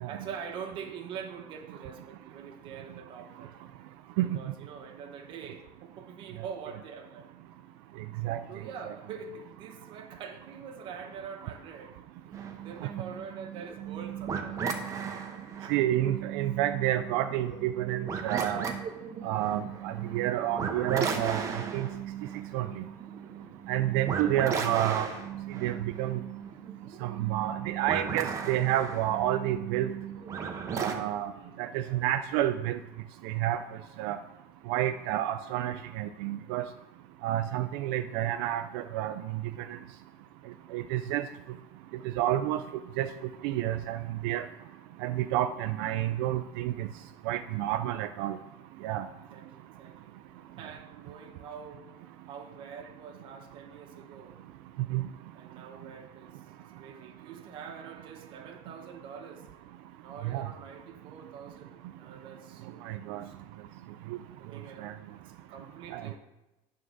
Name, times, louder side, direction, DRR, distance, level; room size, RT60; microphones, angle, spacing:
voice 1, 0.1-3.6 4.3-7.3 8.5-12.0 12.6-14.7 15.3-15.8 24.1-24.4 31.3-32.0 49.3-50.1 50.6-54.4 55.3-59.5 60.0-63.3 64.4-65.0 65.2-66.2, right 6 dB, 40° right, 4 dB, 1.0 m, -45 dB
sound 1, 12.3-30.9, right 6 dB, 25° right, 0.7 m, -36 dB
voice 2, 15.7-18.7 19.2-21.9 22.5-22.8 23.7-25.1 25.6-26.2 27.0-29.9 30.8-31.3 31.6-32.8 33.2-33.6 34.0-34.2 34.7-36.7 37.2-39.1 40.7-41.3 42.2-42.6 43.0-43.1 43.4-44.5 45.0-46.9 47.3-48.4 48.8-49.1 54.9-55.0 60.2-60.5 62.8-63.2 64.8-64.9 65.9-66.1, right 13 dB, 80° right, 8 dB, 0.4 m, -29 dB
9.2 x 3.7 x 6.2 m, 1.0 s
cardioid pair, 175°, 13 cm